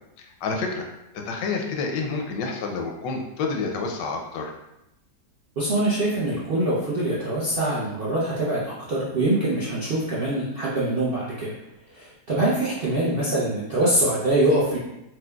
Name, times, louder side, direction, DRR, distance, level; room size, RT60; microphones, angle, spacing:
voice 1, 0.2-0.9 1.2-4.5, left 4 dB, 90° left, 2 dB, 1.2 m, -29 dB
voice 2, 5.6-11.5 11.9-14.8, right 1 dB, 70° right, -8 dB, 0.5 m, -24 dB
4.5 x 2.2 x 2.2 m, 0.88 s
omnidirectional pair, 1.8 m